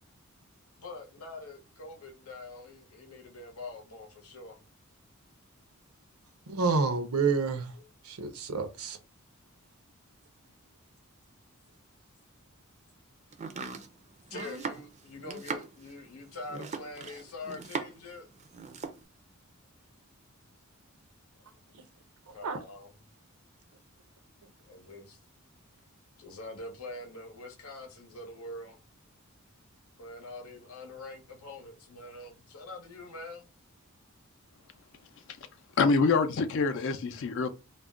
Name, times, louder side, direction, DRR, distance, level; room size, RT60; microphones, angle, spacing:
voice 1, 0.8-4.6 7.3-7.9 14.3-18.3 22.3-23.0 24.6-25.2 26.2-28.8 30.0-33.5, left 2 dB, 85° left, 0.8 m, -44 dB
voice 2, 6.5-7.7 8.1-9.0 22.4-22.6, right 4 dB, 85° right, 0.6 m, -28 dB
Domestic sounds home sounds, 13.3-18.1 18.4-19.0, right 5 dB, 30° right, 0.4 m, -39 dB
voice 3, 35.8-37.5, left 4 dB, 60° left, 0.4 m, -25 dB
2.4 x 2.1 x 3.5 m
head